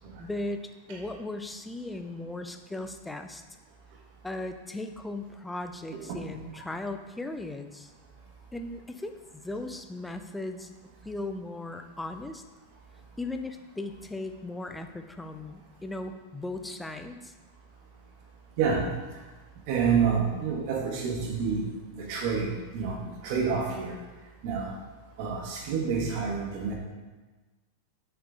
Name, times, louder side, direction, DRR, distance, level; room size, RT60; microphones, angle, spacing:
voice 1, 0.2-3.4 4.2-7.9 8.5-10.7 11.0-12.4 13.2-17.3, left 2 dB, 5° left, 6 dB, 0.4 m, -37 dB
voice 2, 19.7-21.6 21.9-24.0 24.4-24.7 25.2-26.8, right 6 dB, 45° right, -1 dB, 1.3 m, -28 dB
6.9 x 3.7 x 3.6 m, 1.2 s
figure-of-eight pair, 90°, 0 cm